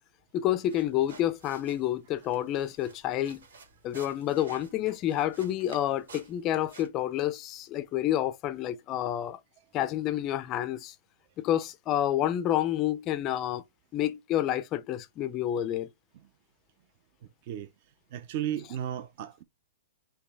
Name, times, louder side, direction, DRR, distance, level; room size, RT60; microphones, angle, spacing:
voice 1, 0.3-3.4 3.8-9.4 9.7-10.9 11.4-13.6 13.9-15.9, left 12 dB, 25° left, 0.4 m, -29 dB
sound 1, 0.6-6.9, right 4 dB, 90° right, 2.2 m, -52 dB
voice 2, 18.1-19.4, right 10 dB, 40° right, 0.5 m, -34 dB
4.9 x 2.9 x 3.3 m
hypercardioid pair, 165°, 0 cm